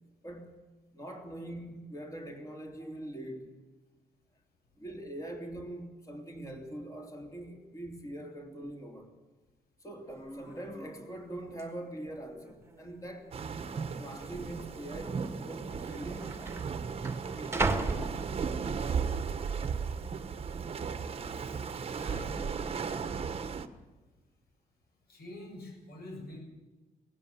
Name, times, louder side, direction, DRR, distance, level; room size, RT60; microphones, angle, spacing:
voice 1, 0.2-0.6 0.9-3.5 4.8-9.1 9.8-13.3 14.0-16.7 17.3-18.0, right 1 dB, 20° left, 3.3 m, -43 dB
sound 1, 10.1-10.2 10.5-10.9 11.6-11.7 12.4-13.0 13.2-13.3 14.2-14.4 15.4-15.5 15.7-18.9 19.4-19.8, right 3 dB, 15° right, 1.7 m, -35 dB
sound 2, 13.3-23.7, right 6 dB, 35° right, 1.2 m, -36 dB
voice 2, 21.1-22.7 25.1-26.4, left 1 dB, 75° left, 7.6 m, -47 dB
18.0 x 16.5 x 9.7 m
wide cardioid pair, 170°, 16 cm